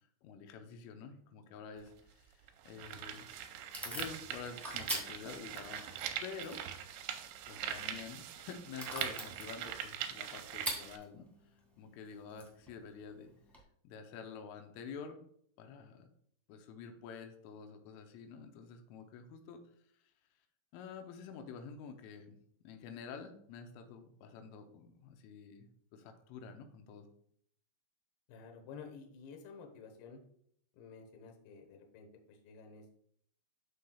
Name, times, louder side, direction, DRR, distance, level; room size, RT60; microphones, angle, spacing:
voice 1, 0.2-3.3 3.8-6.6 7.5-11.3 11.8-13.3 13.8-15.2 15.6-16.1 16.5-19.6 20.7-27.1, left 6 dB, 85° left, 5 dB, 3.3 m, -48 dB
sound 1, 1.8-1.9 2.5-11.0, right 10 dB, 85° right, 2.7 m, -42 dB
Packing tape duct tape / Tearing, 2.8-13.6, right 1 dB, ahead, 0.3 m, -47 dB
voice 2, 28.3-30.2 30.7-32.9, left 5 dB, 70° left, 3 dB, 2.7 m, -52 dB
9.8 x 6.5 x 2.3 m, 0.66 s
omnidirectional pair, 5.5 m